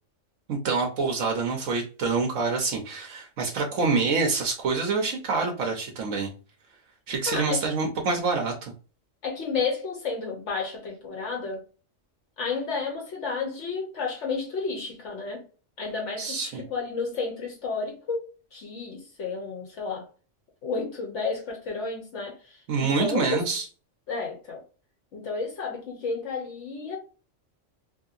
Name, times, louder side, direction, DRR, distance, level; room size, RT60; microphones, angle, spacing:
voice 1, 0.5-6.3 7.1-8.7 16.2-16.6 22.7-23.6, right 4 dB, 90° right, 1.2 m, -26 dB
voice 2, 7.3-7.7 9.2-11.6 12.4-15.4 15.8-20.1 20.6-23.4 24.1-24.6 25.1-27.0, left 4 dB, 70° left, 1.2 m, -31 dB
3.1 x 2.8 x 2.4 m
omnidirectional pair, 1.3 m